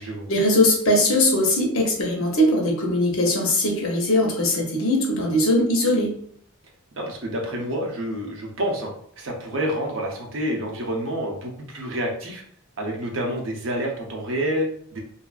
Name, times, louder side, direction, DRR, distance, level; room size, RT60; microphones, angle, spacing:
voice 1, 0.3-6.2, left 1 dB, 75° left, 0 dB, 0.7 m, -20 dB
voice 2, 6.9-12.4 12.8-15.0, equal, 65° right, 0 dB, 0.7 m, -28 dB
2.7 x 2.3 x 2.3 m, 0.63 s
head